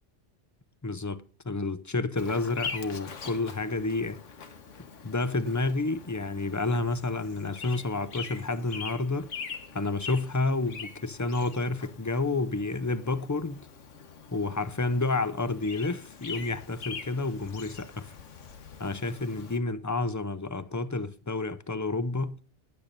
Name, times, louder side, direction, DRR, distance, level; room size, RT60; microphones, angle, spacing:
voice 1, 0.8-4.2 5.0-9.3 9.7-13.6 14.3-18.1 18.8-22.4, left 3 dB, 20° left, 0.5 m, -30 dB
Bird vocalization bird call bird song, 2.2-19.6, left 5 dB, 90° left, 1.6 m, -43 dB
19.0 x 8.7 x 2.6 m
omnidirectional pair, 1.2 m